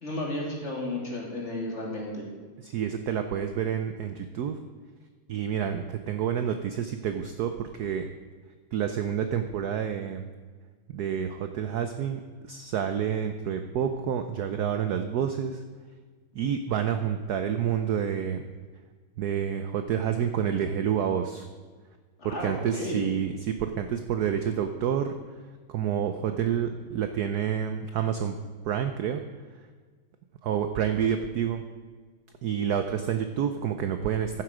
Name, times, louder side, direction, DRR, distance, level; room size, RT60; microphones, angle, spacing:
voice 1, 0.0-2.2 22.2-23.0, left 1 dB, 30° left, -2 dB, 2.6 m, -33 dB
voice 2, 2.6-4.6 5.3-8.1 8.7-10.3 10.9-15.6 16.3-18.4 19.2-21.5 22.2-25.1 25.7-28.3 28.6-29.2 30.4-31.6 32.4-34.4, right 8 dB, 70° right, 8 dB, 0.9 m, -28 dB
14.5 x 7.6 x 5.0 m, 1.5 s
omnidirectional pair, 2.3 m